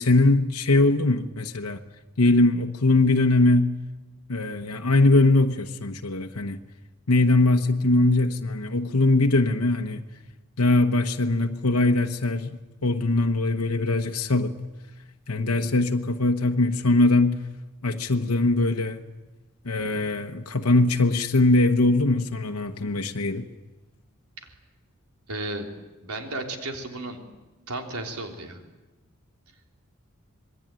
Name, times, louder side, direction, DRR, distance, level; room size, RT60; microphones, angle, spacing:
voice 1, 0.0-1.8 2.2-3.7 4.3-6.6 7.1-10.0 10.6-12.5 12.8-14.5 15.3-17.4 17.8-19.0 19.6-23.5, left 2 dB, 80° left, 1.1 m, -21 dB
voice 2, 25.3-25.7 26.0-27.2 27.7-28.6, right 2 dB, 90° right, 3.5 m, -34 dB
26.5 x 20.5 x 9.1 m
head